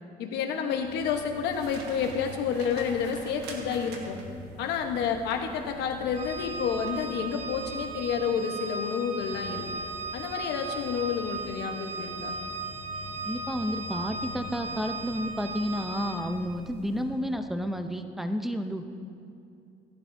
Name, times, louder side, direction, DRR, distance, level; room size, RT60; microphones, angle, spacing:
voice 1, 0.2-4.2 4.6-9.7 10.1-12.4, left 7 dB, 85° left, 4 dB, 1.1 m, -30 dB
sound 1, 0.7-18.2, equal, 70° right, 3.2 m, -47 dB
sound 2, 1.5-4.5 6.9-7.2 7.7-7.9, right 3 dB, 85° right, 1.5 m, -45 dB
Organ, 6.1-16.5, right 3 dB, 40° right, 1.2 m, -37 dB
voice 2, 13.2-18.9, equal, ahead, 7 dB, 0.7 m, -31 dB
17.0 x 11.5 x 2.7 m, 2.6 s
cardioid pair, 110°, 17 cm